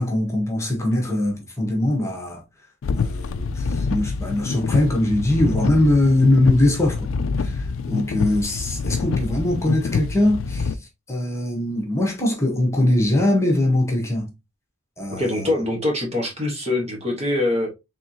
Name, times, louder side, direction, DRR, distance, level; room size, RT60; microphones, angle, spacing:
voice 1, 0.0-2.4 3.0-7.1 7.4-14.3 15.0-15.5, left 1 dB, 15° left, 1.2 m, -21 dB
sound 1, 2.8-10.7, left 5 dB, 70° left, 0.4 m, -26 dB
voice 2, 15.1-17.7, left 2 dB, 30° right, 1.3 m, -23 dB
4.6 x 3.6 x 2.8 m
head